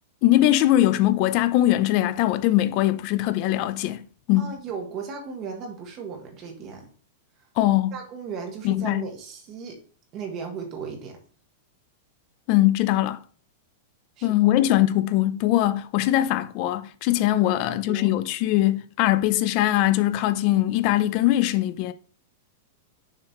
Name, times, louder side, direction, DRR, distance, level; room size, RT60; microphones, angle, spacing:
voice 1, 0.2-4.0 4.3-4.5 7.6-7.9 8.6-9.1 12.5-13.2 14.2-21.9, left 14 dB, 30° left, 0.4 m, -21 dB
voice 2, 4.3-6.9 7.9-9.8 10.1-11.2 14.2-14.3 17.3-18.1, right 5 dB, 25° right, 1.3 m, -36 dB
6.6 x 3.0 x 5.8 m
supercardioid pair, 175°, 0 cm